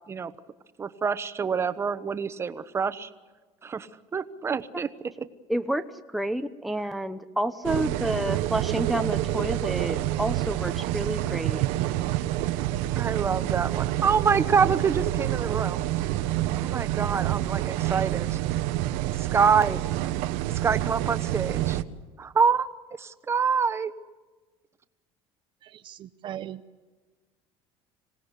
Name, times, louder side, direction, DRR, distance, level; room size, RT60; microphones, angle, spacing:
voice 1, 0.8-3.1 3.6-4.9 13.0-15.8 16.5-18.4 19.1-20.1 20.6-21.8 22.2-23.9, right 6 dB, 20° right, 12 dB, 1.1 m, -26 dB
voice 2, 5.5-11.6, right 1 dB, ahead, 7 dB, 0.8 m, -29 dB
sound 1, 7.6-21.8, right 14 dB, 85° right, 1.1 m, -28 dB
voice 3, 25.6-26.6, right 11 dB, 40° right, 11 dB, 0.8 m, -39 dB
26.5 x 18.0 x 8.3 m, 1.3 s
cardioid pair, 145°, 12 cm